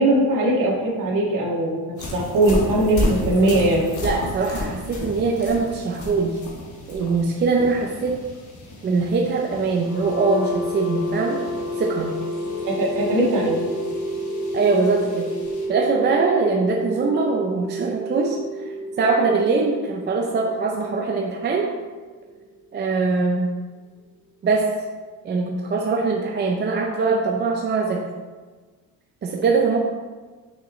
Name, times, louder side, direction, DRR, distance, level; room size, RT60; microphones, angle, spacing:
voice 1, 0.0-3.9 12.6-13.6, right 1 dB, 55° right, -3 dB, 1.9 m, -20 dB
sound 1, 2.0-15.7, left 1 dB, 50° left, 1.4 m, -33 dB
voice 2, 4.0-6.4 6.9-8.2 8.8-11.4 11.8-12.1 14.5-15.3 15.7-18.6 19.0-21.6 22.7-23.5 24.4-24.7 25.2-28.0 29.2-29.8, right 4 dB, 30° right, 0 dB, 0.5 m, -22 dB
sound 2, 9.7-23.6, equal, 30° left, 1.3 m, -30 dB
6.3 x 5.8 x 3.1 m, 1.4 s
cardioid pair, 150°, 39 cm